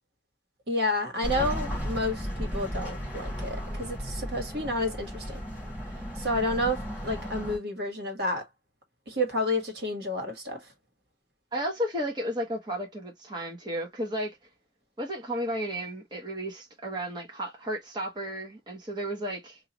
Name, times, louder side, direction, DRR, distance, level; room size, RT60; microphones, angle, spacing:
voice 1, 0.7-5.4 6.2-8.4 9.1-10.6, left 1 dB, 65° right, 1.7 m, -30 dB
sound 1, 1.2-7.6, equal, 10° right, 2.9 m, -35 dB
voice 2, 11.5-14.4 15.0-19.6, equal, 25° right, 1.1 m, -33 dB
4.7 x 2.6 x 3.0 m
head